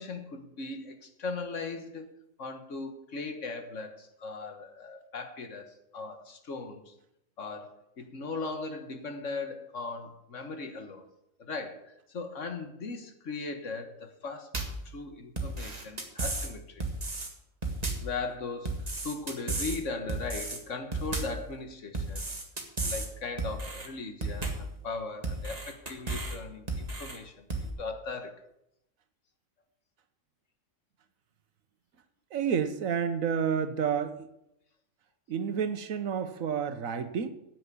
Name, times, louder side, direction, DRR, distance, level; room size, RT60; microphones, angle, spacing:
voice 1, 0.0-2.1 2.4-6.9 7.4-11.1 11.4-16.8 18.0-22.3 22.8-28.4, left 3 dB, 65° left, 7 dB, 1.7 m, -38 dB
sound 1, 14.5-14.9 15.4-16.5 16.8-17.3 17.6-18.1 18.7-19.8 20.1-20.6 20.9-21.4 21.9-23.1 23.4-23.9 24.2-24.7 25.2-26.4 26.7-27.2 27.5-27.7, right 2 dB, 30° right, 1.9 m, -33 dB
voice 2, 32.3-34.3 35.3-37.3, right 7 dB, 85° right, 10 dB, 1.4 m, -30 dB
10.0 x 8.1 x 8.2 m, 0.83 s
omnidirectional pair, 1.4 m